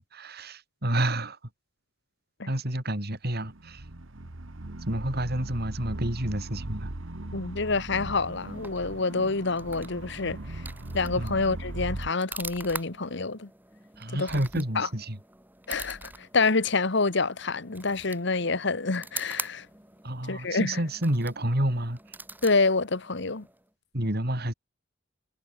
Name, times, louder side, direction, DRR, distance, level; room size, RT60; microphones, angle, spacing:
voice 1, 0.0-1.4 2.5-3.8 4.8-6.9 11.2-11.4 14.0-15.2 20.0-22.0 23.9-24.5, right 1 dB, 55° right, 5.0 m, -29 dB
sound 1, 3.4-12.1, right 1 dB, 90° right, 1.7 m, -38 dB
voice 2, 7.3-10.6 10.9-13.5 14.1-14.9 15.7-19.7 20.3-20.8 22.4-23.5, left 3 dB, 65° left, 1.5 m, -27 dB
sound 2, 8.1-23.7, right 3 dB, 10° right, 2.7 m, -44 dB
head